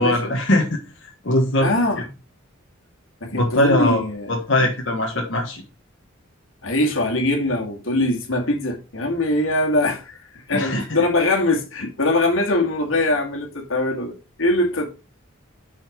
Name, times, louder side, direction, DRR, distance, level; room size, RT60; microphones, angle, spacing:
voice 1, 0.0-1.7 3.3-4.0 4.3-5.6 10.5-11.0, left 1 dB, 60° left, 1.6 m, -21 dB
voice 2, 1.6-2.1 3.2-4.4 6.6-14.1 14.4-14.9, left 2 dB, 75° left, 2.2 m, -22 dB
6.2 x 5.7 x 5.2 m
head